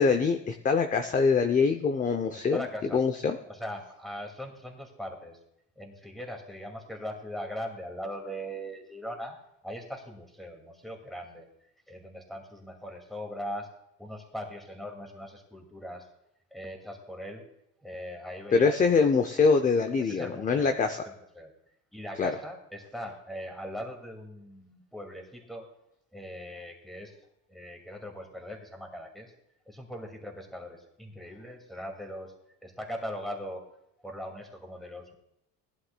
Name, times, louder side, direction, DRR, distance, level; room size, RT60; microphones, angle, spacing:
voice 1, 0.0-2.7 2.9-3.4 18.5-21.0 22.2-22.3, left 5 dB, 20° left, 7 dB, 0.6 m, -24 dB
voice 2, 2.5-3.0 3.5-5.4 5.8-9.4 9.6-11.5 11.9-13.7 14.0-16.1 16.5-17.4 17.8-18.8 20.0-20.8 21.4-21.5 21.9-25.7 26.1-27.2 27.5-29.3 29.7-32.3 32.6-33.6 34.0-35.1, equal, ahead, 1 dB, 2.2 m, -40 dB
19.5 x 11.0 x 2.2 m, 0.81 s
cardioid pair, 135°, 38 cm